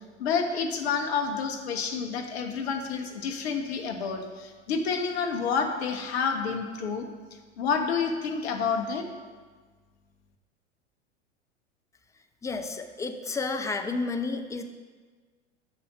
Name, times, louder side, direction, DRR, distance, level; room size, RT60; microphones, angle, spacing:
voice 1, 0.2-7.1 7.6-9.1, left 5 dB, 55° left, 5 dB, 1.3 m, -29 dB
voice 2, 12.4-14.6, left 3 dB, 10° left, 6 dB, 0.5 m, -31 dB
7.9 x 6.2 x 6.1 m, 1.4 s
figure-of-eight pair, 90°, 37 cm